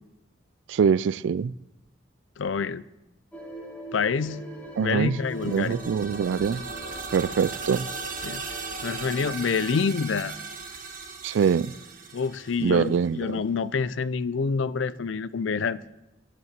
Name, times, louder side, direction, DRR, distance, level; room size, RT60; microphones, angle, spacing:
voice 1, 0.7-1.5 4.8-5.2 5.5-6.6 7.1-7.9 11.2-11.7 12.6-13.4, right 6 dB, 70° right, 0.3 m, -24 dB
voice 2, 2.4-2.8 3.9-4.4 4.8-5.8 8.2-8.4 8.8-10.4 12.1-16.0, left 5 dB, 80° left, 0.5 m, -27 dB
sound 1, 3.3-9.3, right 2 dB, 5° left, 2.0 m, -43 dB
sound 2, 5.2-13.1, right 4 dB, 45° right, 1.4 m, -38 dB
10.0 x 9.6 x 7.3 m
head